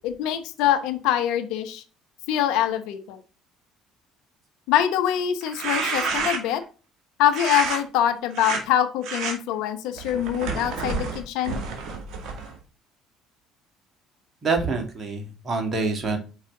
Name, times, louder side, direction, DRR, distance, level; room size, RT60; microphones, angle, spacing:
voice 1, 0.0-1.8 2.3-3.2 4.7-6.6 7.2-11.6, left 10 dB, 70° left, 9 dB, 0.8 m, -24 dB
sound 1, 5.4-6.6 7.3-7.8 8.3-8.6 9.0-9.3 10.0-12.5, right 4 dB, 60° right, 2.1 m, -29 dB
voice 2, 14.4-16.2, right 3 dB, 40° right, 3 dB, 2.2 m, -26 dB
5.6 x 4.8 x 3.7 m, 0.35 s
hypercardioid pair, 60°, 0 cm